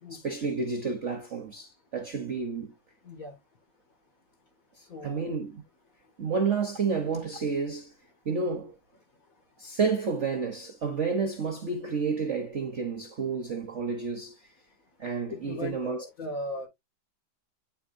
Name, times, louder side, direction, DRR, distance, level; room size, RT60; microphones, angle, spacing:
voice 1, 0.1-2.7 5.0-5.6 6.2-7.9 8.2-8.7 9.6-14.5 15.0-16.0, right 5 dB, 45° right, 1.0 m, -30 dB
voice 2, 3.0-3.3 4.9-5.3 15.3-16.7, left 1 dB, 40° left, 2.3 m, -38 dB
9.4 x 4.3 x 2.6 m
omnidirectional pair, 2.3 m